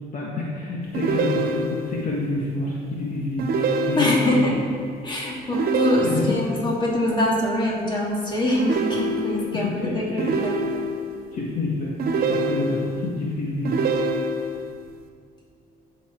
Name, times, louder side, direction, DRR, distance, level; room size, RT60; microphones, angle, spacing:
voice 1, 0.1-3.4 3.9-4.6 6.0-6.5 9.5-10.3 11.3-11.9 12.3-13.7, left 2 dB, 50° left, -4 dB, 1.8 m, -28 dB
sound 1, 0.9-2.0 3.4-4.4 5.5-6.6 8.6-9.6 10.2-11.1 12.0-13.0 13.6-14.7, right 2 dB, 65° right, 1.3 m, -25 dB
voice 2, 4.0-4.6 5.0-10.6, left 1 dB, 25° left, -4 dB, 3.0 m, -24 dB
14.0 x 7.1 x 4.8 m, 2.2 s
cardioid pair, 110°, 17 cm